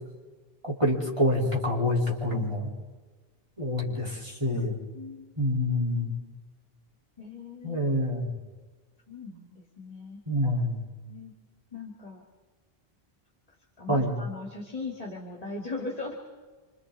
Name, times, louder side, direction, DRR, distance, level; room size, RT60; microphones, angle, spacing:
voice 1, 0.6-2.7 3.6-4.8 5.4-6.1 7.6-8.3 10.3-10.8 13.9-14.2, left 1 dB, 30° right, -4 dB, 4.8 m, -27 dB
voice 2, 4.9-5.4 7.2-7.8 9.1-10.2 11.1-11.3 11.7-12.2 13.8-16.1, left 3 dB, 35° left, 0 dB, 2.7 m, -39 dB
28.5 x 25.5 x 4.2 m, 1.4 s
omnidirectional pair, 1.0 m